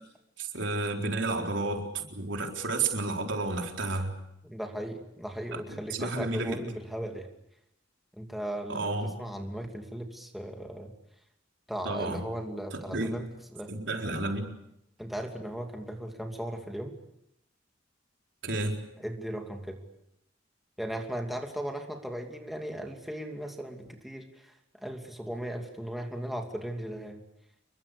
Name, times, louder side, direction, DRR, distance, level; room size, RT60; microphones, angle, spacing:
voice 1, 0.4-4.1 5.7-6.6 8.7-9.2 11.8-12.2 12.7-13.1 13.7-14.5 18.4-18.8, right 2 dB, 80° right, 2 dB, 4.1 m, -31 dB
voice 2, 4.4-7.3 8.1-8.9 9.2-10.9 11.7-13.7 15.0-16.9 19.0-19.8 20.8-24.5 24.8-27.2, right 1 dB, ahead, 2 dB, 2.8 m, -37 dB
28.5 x 23.0 x 6.9 m, 0.79 s
head